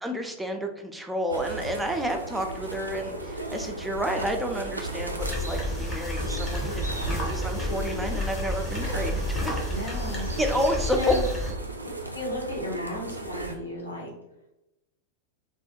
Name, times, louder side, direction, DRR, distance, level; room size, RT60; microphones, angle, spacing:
voice 1, 0.0-9.6 10.4-11.2, equal, 5° right, 3 dB, 0.3 m, -30 dB
sound 1, 1.3-13.5, right 2 dB, 85° right, 0.3 m, -36 dB
sound 2, 5.2-11.5, left 1 dB, 15° left, 0.7 m, -31 dB
voice 2, 9.7-10.3 10.9-11.3 12.1-14.1, left 1 dB, 85° left, -2 dB, 0.7 m, -33 dB
2.3 x 2.1 x 2.9 m, 0.91 s
figure-of-eight pair, 90°, 0 cm